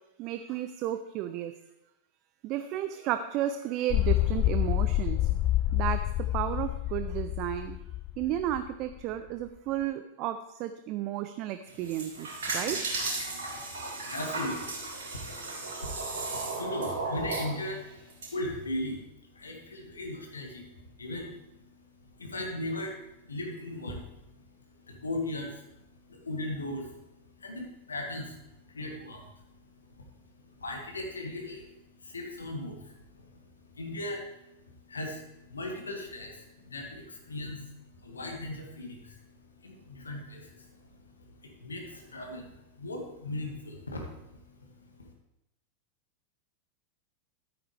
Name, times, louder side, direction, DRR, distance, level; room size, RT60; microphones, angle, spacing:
voice 1, 0.2-1.5 2.4-5.2 5.7-7.8 8.2-12.8, right 12 dB, 40° right, 10 dB, 0.5 m, -33 dB
sound 1, 3.9-8.6 8.9-9.0, left 15 dB, 35° left, 0.5 m, -28 dB
sound 2, 11.7-18.3, right 3 dB, 65° right, 4.0 m, -35 dB
voice 2, 13.2-45.1, left 1 dB, 75° left, 2 dB, 1.9 m, -39 dB
12.5 x 8.8 x 3.3 m, 0.89 s
figure-of-eight pair, 90°, 0 cm